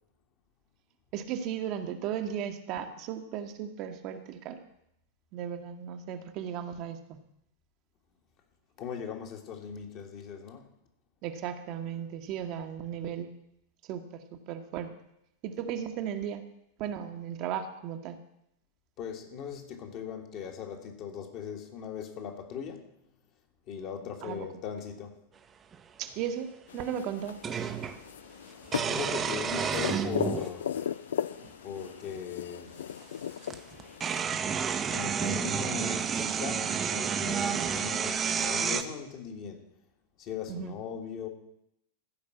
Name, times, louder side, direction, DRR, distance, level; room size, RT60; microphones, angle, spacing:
voice 1, 1.1-4.6 5.3-7.2 11.2-13.3 13.9-14.2 14.5-14.9 15.4-16.4 16.8-18.2 24.2-24.5 26.0-27.4 40.5-40.7, right 9 dB, 40° right, 1.1 m, -36 dB
voice 2, 8.8-10.7 19.0-22.9 23.7-25.2 28.8-30.7 31.6-32.8 34.9-39.6 40.2-41.3, left 7 dB, 40° left, 1.9 m, -39 dB
sound 1, 25.7-25.8 27.4-28.0 28.7-30.5 31.4-31.5 33.0-33.1 33.4-38.8, right 7 dB, 25° right, 0.8 m, -30 dB
sound 2, 26.7-34.2, left 9 dB, 65° left, 0.3 m, -37 dB
15.0 x 5.3 x 8.2 m
figure-of-eight pair, 90°, 0 cm